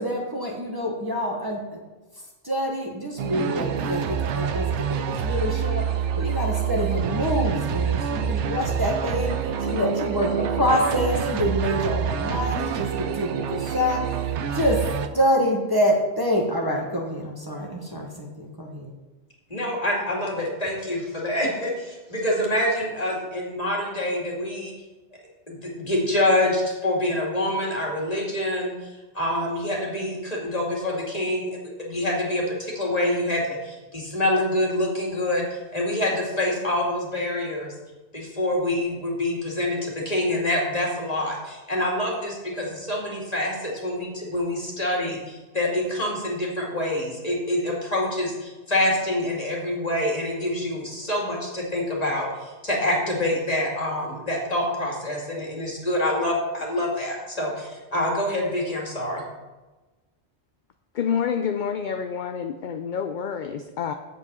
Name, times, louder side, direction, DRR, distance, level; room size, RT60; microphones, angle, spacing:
voice 1, 0.0-1.6 2.4-14.9 15.1-18.9, equal, 20° right, -2 dB, 1.3 m, -26 dB
sound 1, 3.2-15.1, right 7 dB, 85° right, 1.0 m, -27 dB
voice 2, 19.5-24.7 25.5-31.5 31.8-37.7 38.1-59.2, left 1 dB, 35° left, -2 dB, 2.4 m, -26 dB
voice 3, 61.0-63.9, left 7 dB, 55° left, 7 dB, 0.6 m, -28 dB
7.9 x 7.6 x 5.5 m, 1.2 s
omnidirectional pair, 1.2 m